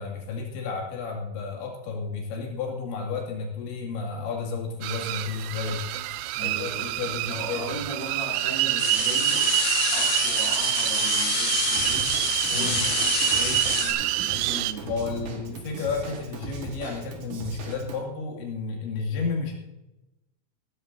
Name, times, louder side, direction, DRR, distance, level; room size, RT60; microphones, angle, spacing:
voice 1, 0.0-5.8 6.4-7.8 12.5-12.8 14.8-19.6, left 4 dB, 80° left, 0 dB, 4.6 m, -32 dB
sound 1, 4.8-14.7, right 15 dB, 85° right, 3.0 m, -26 dB
voice 2, 6.4-9.6 9.9-12.1 12.5-15.6, right 1 dB, 30° right, -4 dB, 2.4 m, -38 dB
sound 2, 8.8-13.9, left 6 dB, 60° left, 2.0 m, -28 dB
Drum kit / Drum, 11.8-18.0, right 4 dB, 60° right, 2.5 m, -39 dB
16.0 x 14.5 x 2.7 m, 0.95 s
omnidirectional pair, 5.3 m